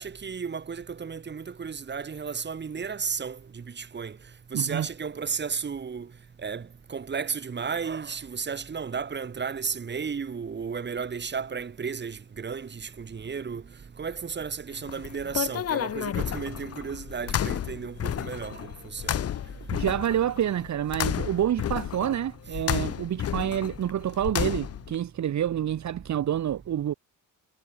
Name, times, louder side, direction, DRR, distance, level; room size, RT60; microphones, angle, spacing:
voice 1, 0.0-4.2 4.5-6.1 6.4-13.6 14.0-19.2, right 6 dB, 35° right, 3.6 m, -33 dB
voice 2, 4.5-4.9 19.7-26.9, right 10 dB, 60° right, 1.9 m, -28 dB
sound 1, 14.7-24.9, left 10 dB, 50° left, 0.9 m, -32 dB
cardioid pair, 145°, 32 cm